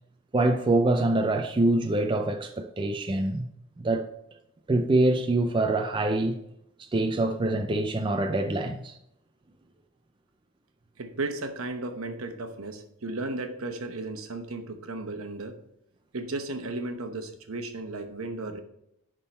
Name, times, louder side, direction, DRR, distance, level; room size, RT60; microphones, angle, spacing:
voice 1, 0.3-3.5 3.8-4.1 4.7-6.4 6.8-9.0, right 2 dB, 20° right, 0.4 m, -25 dB
voice 2, 11.0-15.5 16.1-18.6, right 2 dB, 75° right, 1.0 m, -34 dB
11.0 x 3.7 x 4.1 m
head